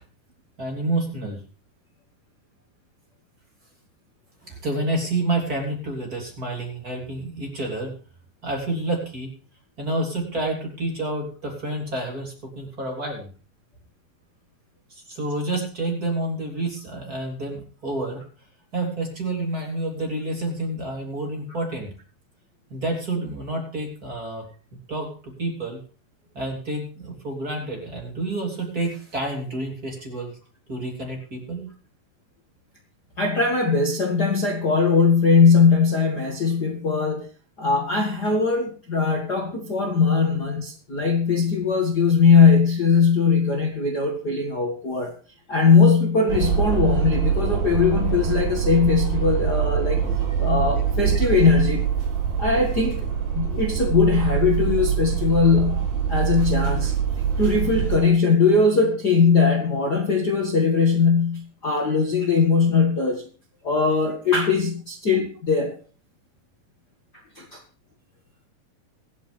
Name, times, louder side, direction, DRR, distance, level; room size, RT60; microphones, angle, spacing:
voice 1, 0.6-1.4 4.4-7.9 8.4-9.3 9.8-13.3 14.9-18.2 18.7-21.9 22.7-24.4 24.9-25.8 26.3-30.3 30.7-31.7, right 2 dB, 25° right, 0 dB, 3.6 m, -29 dB
voice 2, 33.2-37.3 37.6-45.1 45.5-50.0 50.4-51.9 52.4-53.1 53.3-56.9 57.4-63.2 63.6-65.8 67.4-67.6, left 5 dB, 35° left, 1 dB, 2.1 m, -20 dB
sound 1, 46.3-58.0, right 7 dB, 80° right, 5.4 m, -24 dB
24.5 x 8.5 x 3.5 m, 0.38 s
omnidirectional pair, 4.1 m